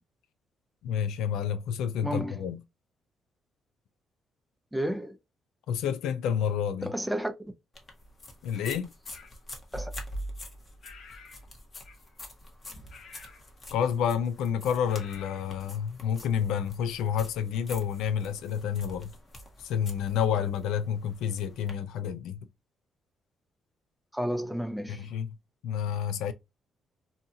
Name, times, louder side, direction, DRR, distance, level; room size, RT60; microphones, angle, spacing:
voice 1, 0.8-2.6 5.7-6.9 8.4-8.9 13.7-19.1 19.6-22.4 24.9-25.3 25.6-26.3, left 8 dB, 90° left, 0.3 m, -29 dB
voice 2, 2.0-2.4 4.7-5.2 6.8-7.3 9.7-9.9 24.1-25.1, equal, 5° right, 0.5 m, -31 dB
sound 1, 7.7-21.7, equal, 35° left, 1.0 m, -45 dB
sound 2, 9.1-9.4 10.8-11.5 11.8-12.2 12.9-13.5 14.9-15.5, left 5 dB, 60° left, 0.7 m, -51 dB
2.7 x 2.3 x 2.7 m
cardioid pair, 90°, 0 cm